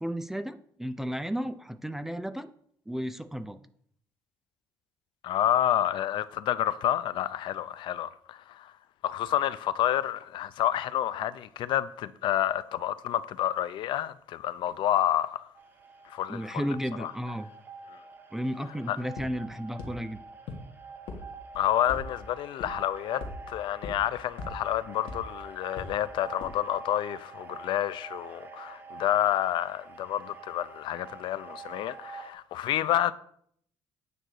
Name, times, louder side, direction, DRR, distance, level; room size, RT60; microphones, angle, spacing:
voice 1, 0.0-2.5 2.9-3.6 16.3-17.5 18.3-20.2, equal, 5° right, 0.4 m, -33 dB
voice 2, 5.2-8.7 9.0-15.5 16.1-16.6 17.0-17.1 18.9-19.0 21.6-33.1, left 12 dB, 65° left, 0.4 m, -29 dB
sound 1, 15.5-32.3, right 4 dB, 20° right, 0.8 m, -47 dB
sound 2, 19.2-19.3 19.8-19.9 20.5-20.6 21.1-21.2 21.5-22.0 22.6-22.7 23.2-23.3 23.8-23.9 24.4-24.5 25.1-25.2 25.8-25.9 26.4-26.5, left 4 dB, 85° left, 1.7 m, -37 dB
9.0 x 4.0 x 6.3 m
cardioid pair, 165°, 9 cm